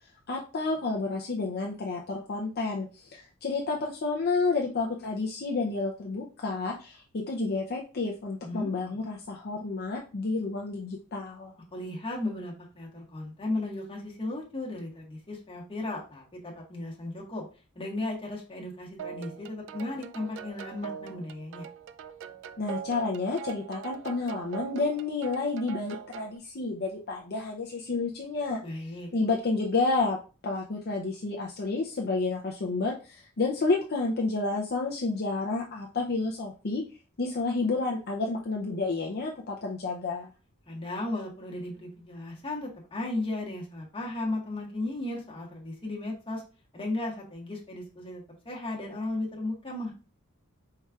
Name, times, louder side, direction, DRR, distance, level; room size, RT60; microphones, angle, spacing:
voice 1, 0.3-11.5 22.6-28.6 29.1-36.8 37.2-40.3, left 3 dB, 45° left, 0 dB, 0.5 m, -30 dB
voice 2, 11.7-17.4 17.7-21.7 28.6-29.1 40.7-46.4 46.7-49.9, left 2 dB, 25° left, -2 dB, 1.3 m, -35 dB
sound 1, 19.0-26.4, right 8 dB, 55° right, 0.3 m, -42 dB
4.7 x 4.2 x 2.4 m, 0.34 s
head